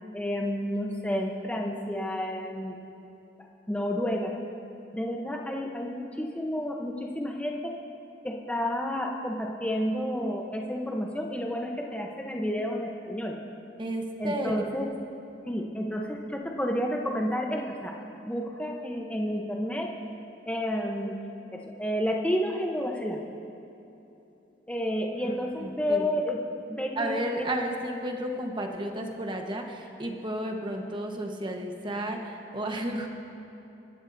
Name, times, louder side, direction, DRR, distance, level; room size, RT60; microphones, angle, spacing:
voice 1, 0.1-2.8 3.7-4.3 4.9-7.7 8.2-13.4 14.2-14.9 15.5-17.9 18.3-19.9 20.5-21.2 21.5-23.2 24.7-26.4 26.7-27.2, equal, 10° left, 0 dB, 0.8 m, -30 dB
voice 2, 13.8-14.6 25.2-26.1 27.0-33.1, right 1 dB, 30° right, 2 dB, 1.2 m, -33 dB
26.0 x 12.0 x 2.7 m, 2.9 s
head